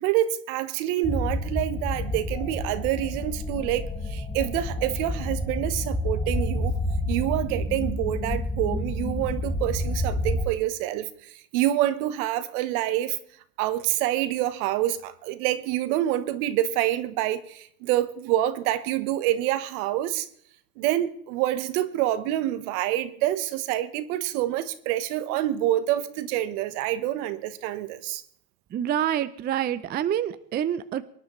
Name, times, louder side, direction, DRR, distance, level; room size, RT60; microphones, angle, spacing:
voice 1, 0.0-6.7 7.1-13.2 13.6-20.3 20.8-28.2, right 13 dB, 65° right, 1.2 m, -27 dB
sound 1, 1.0-10.4, left 1 dB, 10° left, 1.0 m, -29 dB
voice 2, 28.7-31.0, right 10 dB, 20° right, 0.5 m, -27 dB
24.5 x 10.5 x 3.1 m
supercardioid pair, 110°, 47 cm